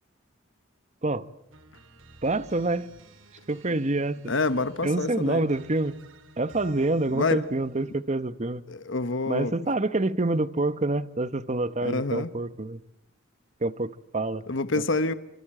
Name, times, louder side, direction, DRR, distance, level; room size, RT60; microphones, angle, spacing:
sound 1, 1.5-8.2, right 2 dB, 70° right, 2.2 m, -53 dB
voice 1, 2.2-2.9 3.5-4.3 4.8-5.9 6.4-8.6 9.3-12.8 13.6-14.4, right 2 dB, 35° right, 1.0 m, -27 dB
voice 2, 4.3-5.5 7.1-7.4 8.7-9.5 11.8-12.3 14.5-15.1, left 3 dB, 65° left, 1.2 m, -27 dB
27.0 x 26.5 x 7.6 m
head